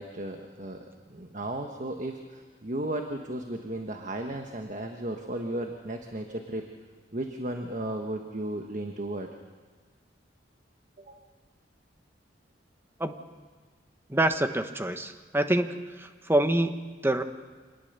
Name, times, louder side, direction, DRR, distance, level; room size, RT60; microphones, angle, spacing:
voice 1, 0.0-6.7 7.1-9.3 11.0-11.2, right 1 dB, 40° right, 4 dB, 1.3 m, -35 dB
voice 2, 14.1-15.7 15.9-16.7 17.0-17.2, right 1 dB, 10° right, 8 dB, 1.0 m, -26 dB
26.0 x 19.0 x 6.8 m, 1.4 s
head